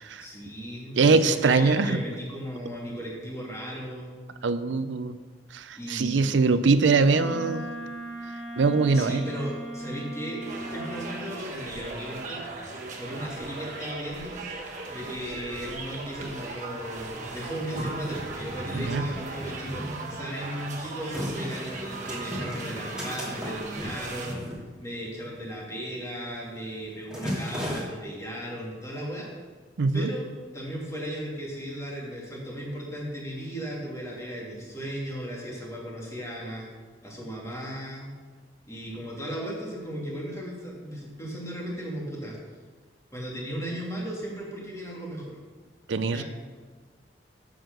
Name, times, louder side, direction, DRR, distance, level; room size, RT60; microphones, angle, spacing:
voice 1, 0.2-4.2 5.8-6.4 8.9-12.5 13.0-14.4 14.9-24.5 24.8-29.3 29.9-36.6 37.0-38.1 38.7-42.4 43.1-45.4 46.0-46.2, equal, 15° left, -3 dB, 2.3 m, -36 dB
voice 2, 1.0-2.0 4.4-5.2 5.5-7.7 8.6-9.2 18.7-19.0 29.8-30.1 45.9-46.2, right 4 dB, 90° right, 12 dB, 0.5 m, -22 dB
Wind instrument woodwind instrument, 7.0-11.3, right 1 dB, 70° left, 1.2 m, -38 dB
sound 1, 10.4-24.3, right 3 dB, 45° right, 1.4 m, -38 dB
sound 2, 15.3-15.4 15.6-16.4 17.0-25.3 25.6-25.9 26.2-26.5 26.8-27.8, equal, 5° right, 2.5 m, -36 dB
7.8 x 6.4 x 6.7 m, 1.4 s
head